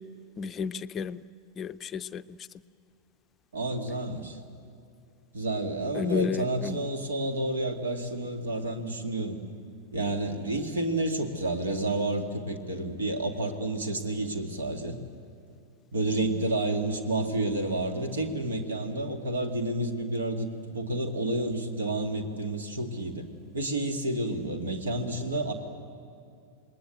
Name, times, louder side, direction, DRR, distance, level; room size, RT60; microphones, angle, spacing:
voice 1, 0.4-1.2 1.6-2.4 5.9-6.8, left 6 dB, 25° left, 12 dB, 0.6 m, -31 dB
voice 2, 3.5-4.4 5.3-9.4 9.9-15.0 15.9-23.2 23.5-25.5, right 2 dB, 70° right, 5 dB, 2.4 m, -30 dB
28.0 x 20.5 x 7.9 m, 2.5 s
figure-of-eight pair, 90°, 0 cm